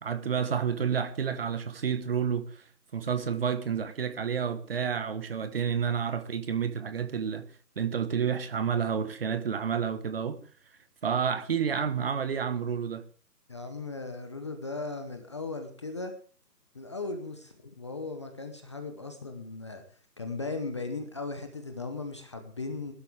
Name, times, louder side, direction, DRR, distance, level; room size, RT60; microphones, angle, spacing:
voice 1, 0.0-2.6 2.9-7.5 7.8-10.4 11.0-13.0, right 7 dB, 35° right, 1.4 m, -30 dB
voice 2, 13.5-16.1 16.7-19.8 20.2-22.9, left 3 dB, 20° left, 0.8 m, -37 dB
21.5 x 12.0 x 3.5 m
figure-of-eight pair, 150°, 49 cm